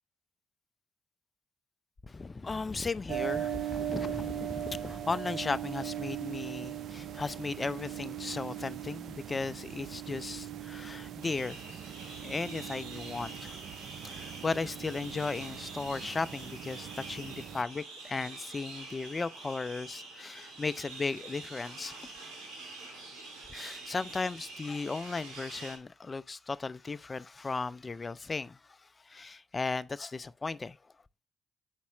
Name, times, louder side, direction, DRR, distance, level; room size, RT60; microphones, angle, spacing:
voice 1, 2.0-11.6 12.2-13.6 13.9-22.0 23.5-30.9, left 4 dB, 35° left, 0.5 m, -36 dB
sound 1, 3.1-17.6, right 11 dB, 70° right, 0.4 m, -39 dB
sound 2, 11.2-25.8, right 3 dB, 85° right, 2.0 m, -46 dB
7.4 x 4.2 x 3.8 m
hypercardioid pair, 45°, 0 cm